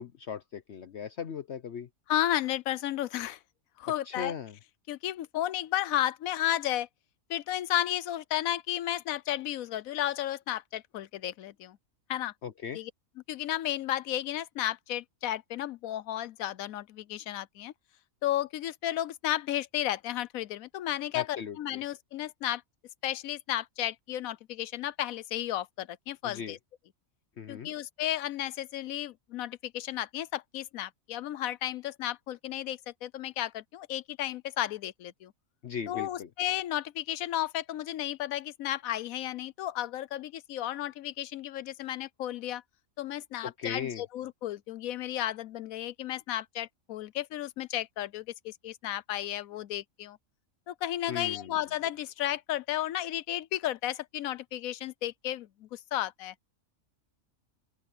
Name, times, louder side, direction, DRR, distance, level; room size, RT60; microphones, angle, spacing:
voice 1, 0.0-1.9 4.1-4.6 12.4-12.8 21.1-21.8 26.2-26.6 27.4-27.7 35.6-36.3 43.4-44.0 51.1-51.5, left 7 dB, 60° left, 1.0 m, -38 dB
voice 2, 2.1-3.4 3.8-4.3 4.9-6.9 7.3-11.8 12.1-12.3 12.7-12.9 13.3-17.7 18.2-22.6 23.0-26.6 27.5-35.3 35.9-42.6 43.0-50.2 50.7-56.3, left 12 dB, 90° left, 1.1 m, -33 dB
open air
omnidirectional pair, 1.4 m